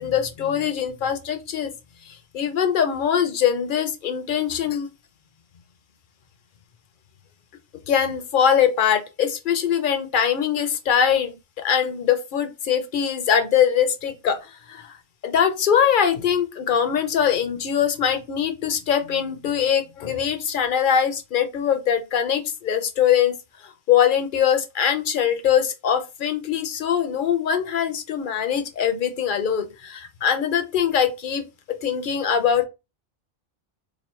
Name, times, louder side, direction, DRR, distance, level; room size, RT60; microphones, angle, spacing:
voice 1, 0.0-1.7 2.1-4.9 7.9-14.4 14.7-15.0 15.2-23.3 23.9-31.4 31.8-32.7, left 8 dB, 60° left, 0.7 m, -22 dB
3.0 x 2.4 x 4.2 m
omnidirectional pair, 1.1 m